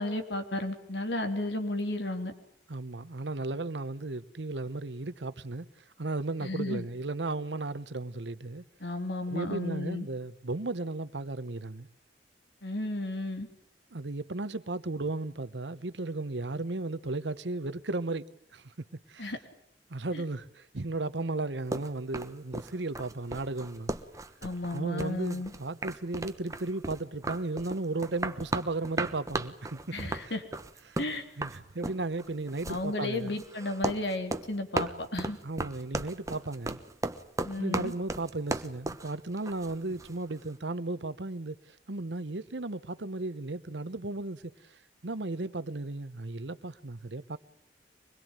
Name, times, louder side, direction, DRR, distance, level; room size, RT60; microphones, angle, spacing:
voice 1, 0.0-2.3 6.4-6.8 8.8-10.1 12.6-13.5 19.2-19.4 20.1-20.2 24.4-25.5 29.9-30.4 31.0-31.2 32.7-35.4 37.4-37.9, left 2 dB, 75° left, 3.5 m, -33 dB
voice 2, 2.7-8.6 9.3-11.9 13.9-18.7 19.1-19.3 19.9-23.9 24.7-30.4 30.9-31.0 31.4-33.4 35.4-36.8 37.6-47.4, right 2 dB, 90° right, 1.1 m, -35 dB
sound 1, 21.7-40.2, right 2 dB, 20° right, 1.2 m, -36 dB
24.5 x 21.5 x 9.1 m
head